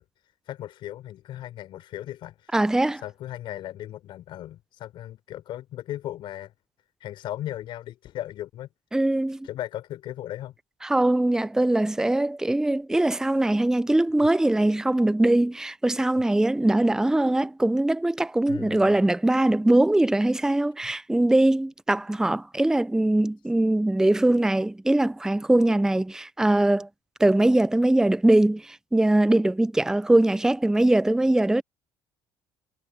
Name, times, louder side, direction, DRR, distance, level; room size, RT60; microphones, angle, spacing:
voice 1, 0.0-2.6 2.9-6.5 7.0-8.7 9.4-10.6 18.5-18.9, left 13 dB, 65° left, 5.5 m, -37 dB
voice 2, 2.5-3.0 8.9-9.5 10.8-26.9 27.2-31.6, right 1 dB, 5° right, 0.6 m, -22 dB
hypercardioid pair, 70°, 9 cm